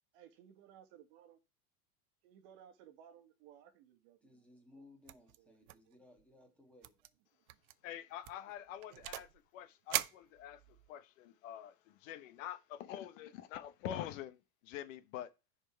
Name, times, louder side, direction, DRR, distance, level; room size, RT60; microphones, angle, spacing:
voice 1, 0.1-1.4 2.2-4.5 4.7-4.9 5.4-5.9 8.7-9.0, right 9 dB, 45° right, 1.5 m, -60 dB
voice 2, 4.2-7.1, left 2 dB, 5° left, 1.9 m, -62 dB
sound 1, 5.1-5.4 5.7-5.9 6.2-6.3 6.8-7.1 7.5-7.7 8.2-9.4 9.9-10.9, right 16 dB, 70° right, 0.7 m, -40 dB
voice 3, 7.8-9.3 9.5-15.3, left 11 dB, 55° left, 1.0 m, -46 dB
10.0 x 4.5 x 4.4 m
supercardioid pair, 155°, 46 cm